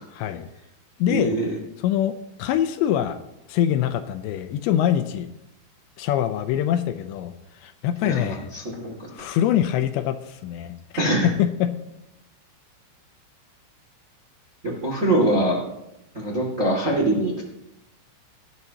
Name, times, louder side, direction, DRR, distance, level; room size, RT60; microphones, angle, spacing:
voice 1, 0.1-0.5 1.0-1.4 1.8-3.2 3.5-5.3 6.0-7.3 7.6-8.5 9.1-10.8 11.2-11.7, left 11 dB, 80° left, 8 dB, 2.6 m, -24 dB
voice 2, 1.1-1.5 8.0-9.1 11.0-11.3 14.6-15.6 16.1-17.5, right 1 dB, 45° right, -1 dB, 0.9 m, -23 dB
19.0 x 13.5 x 2.9 m, 0.87 s
omnidirectional pair, 5.7 m